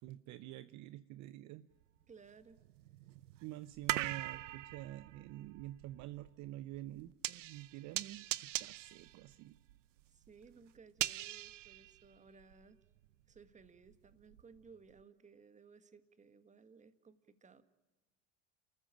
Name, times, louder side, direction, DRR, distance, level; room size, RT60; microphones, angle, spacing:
voice 1, 0.0-1.7 3.4-9.6, right 15 dB, 50° right, 14 dB, 0.8 m, -48 dB
sound 1, 1.8-1.9 2.5-12.6 13.0-14.6 15.0-15.1, right 16 dB, 85° right, 0.7 m, -42 dB
voice 2, 2.1-2.6 10.1-12.8 13.3-17.6, right 5 dB, 20° right, 12 dB, 1.7 m, -60 dB
29.5 x 14.5 x 9.1 m, 1.1 s
hypercardioid pair, 90°, 36 cm